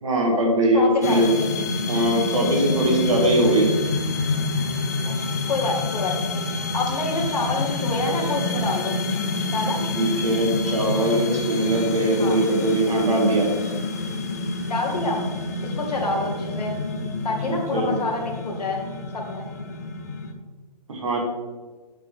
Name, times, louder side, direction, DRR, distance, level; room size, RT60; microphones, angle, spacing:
voice 1, 0.0-1.4 1.9-3.7 9.9-13.5 17.5-18.0 20.9-21.2, right 1 dB, 50° right, 0 dB, 2.0 m, -21 dB
voice 2, 0.7-1.5 5.0-5.1 5.5-6.2 6.7-8.9 9.5-9.8 12.2-12.4 14.7-15.2 15.6-16.8 17.2-18.8 19.1-19.5, left 2 dB, 70° left, -1 dB, 2.6 m, -27 dB
sound 1, 1.0-20.3, left 3 dB, 25° left, 0.6 m, -28 dB
10.0 x 5.7 x 3.8 m, 1.3 s
hypercardioid pair, 170°, 21 cm